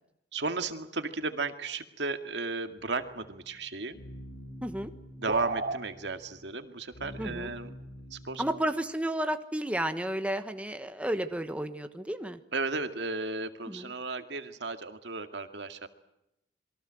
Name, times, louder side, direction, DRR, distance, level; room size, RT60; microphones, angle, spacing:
voice 1, 0.3-4.0 5.2-7.7 8.1-8.6 12.5-15.9, right 3 dB, 75° right, 8 dB, 2.2 m, -34 dB
sound 1, 2.8-8.5, equal, 90° left, 4.2 m, -47 dB
voice 2, 4.6-4.9 7.2-7.5 8.4-12.4 13.7-13.8, right 1 dB, 5° right, 8 dB, 1.3 m, -32 dB
sound 2, 5.3-5.8, right 3 dB, 50° right, 1.4 m, -31 dB
27.5 x 22.5 x 7.7 m, 0.85 s
head